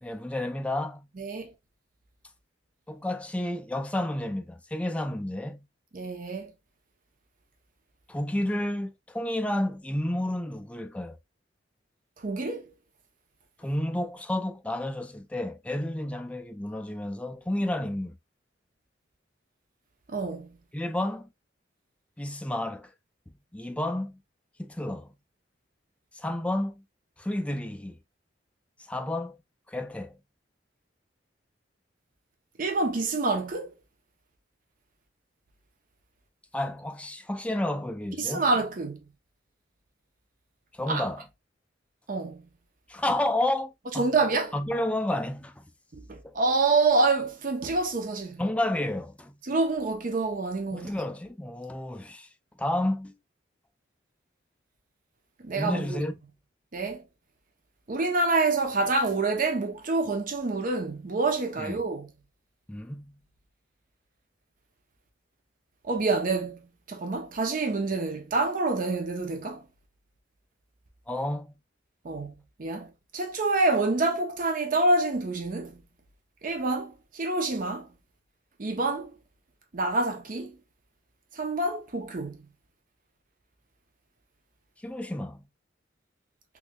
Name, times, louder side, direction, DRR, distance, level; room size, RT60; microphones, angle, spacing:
voice 1, 0.0-1.1 2.9-5.6 8.1-11.2 13.6-18.1 20.7-21.3 22.2-22.9 23.5-24.2 24.6-25.1 26.1-26.8 27.2-28.0 28.9-29.4 29.7-30.2 36.5-38.5 40.7-41.2 42.9-44.1 44.5-45.6 46.2-46.4 48.4-49.4 50.7-52.3 52.6-53.1 55.5-56.1 61.6-61.7 62.7-63.2 71.1-71.5 84.8-85.4, left 1 dB, 5° left, 0.3 m, -31 dB
voice 2, 1.2-1.5 5.9-6.5 12.2-12.7 20.1-20.5 32.6-33.7 38.2-39.0 40.9-41.1 42.1-42.4 44.0-44.5 45.9-48.4 49.4-50.9 55.4-56.0 56.7-57.0 57.9-62.1 65.8-66.6 66.9-69.6 72.0-72.3 72.6-75.8 76.4-77.9 78.6-79.1 79.7-80.6 81.3-82.4, right 3 dB, 45° right, 0.6 m, -27 dB
3.6 x 3.1 x 2.2 m
head